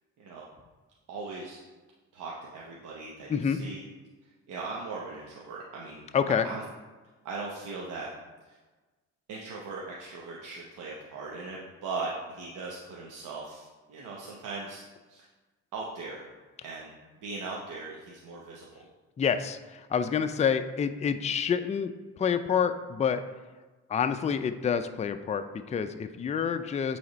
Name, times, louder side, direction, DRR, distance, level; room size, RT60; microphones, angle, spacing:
voice 1, 1.1-1.6 2.1-3.8 4.2-6.0 6.4-6.6 7.2-8.1 8.4-8.6 9.3-14.8 15.1-15.3 15.7-16.3 16.6-16.9 17.2-18.7, right 3 dB, 85° right, -3 dB, 0.9 m, -39 dB
voice 2, 6.1-6.5 19.2-23.2 23.9-27.0, left 7 dB, 25° left, 9 dB, 0.4 m, -28 dB
7.9 x 3.5 x 4.1 m, 1.3 s
cardioid pair, 90°, 30 cm